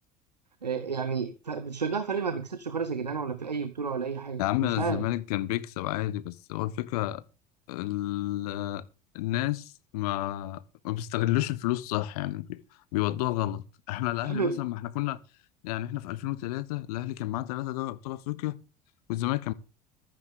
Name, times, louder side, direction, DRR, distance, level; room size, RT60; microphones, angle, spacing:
voice 1, 0.6-5.0 14.2-14.6, right 5 dB, 90° right, 0.9 m, -31 dB
voice 2, 4.4-7.2 7.7-8.8 9.1-12.6 12.9-15.2 15.6-18.6 19.1-19.5, left 16 dB, 65° left, 1.0 m, -30 dB
15.5 x 13.0 x 3.7 m
figure-of-eight pair, 65°, 21 cm